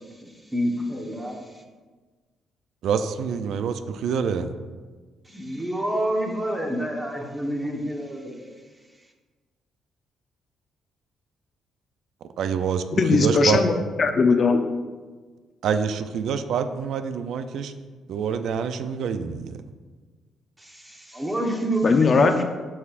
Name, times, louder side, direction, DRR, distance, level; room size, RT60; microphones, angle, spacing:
voice 1, 0.2-1.6 5.3-8.5 20.6-22.0, right 1 dB, 15° right, 1 dB, 1.1 m, -28 dB
voice 2, 2.8-4.5 12.4-12.9 13.1-13.6 15.6-17.7 18.1-19.6, right 6 dB, 75° right, 10 dB, 0.4 m, -26 dB
voice 3, 13.0-13.7 14.0-14.6 21.8-22.4, left 4 dB, 45° left, 6 dB, 0.7 m, -18 dB
12.5 x 4.2 x 2.5 m, 1.4 s
cardioid pair, 90°, 0 cm